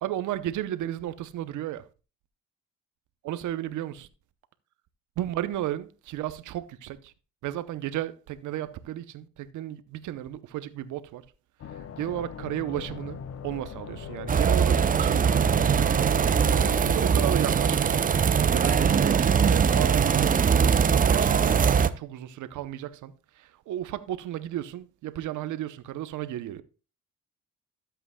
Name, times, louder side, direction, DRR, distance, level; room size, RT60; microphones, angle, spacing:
voice 1, 0.0-1.9 3.2-4.1 5.2-7.1 7.4-11.2 11.8-15.4 16.5-26.6, right 13 dB, 80° right, 0.7 m, -34 dB
sound 1, 11.6-17.1, left 7 dB, 50° left, 0.7 m, -40 dB
sound 2, 14.3-21.9, right 7 dB, 30° right, 0.5 m, -21 dB
12.5 x 7.9 x 2.2 m
cardioid pair, 90°, 30 cm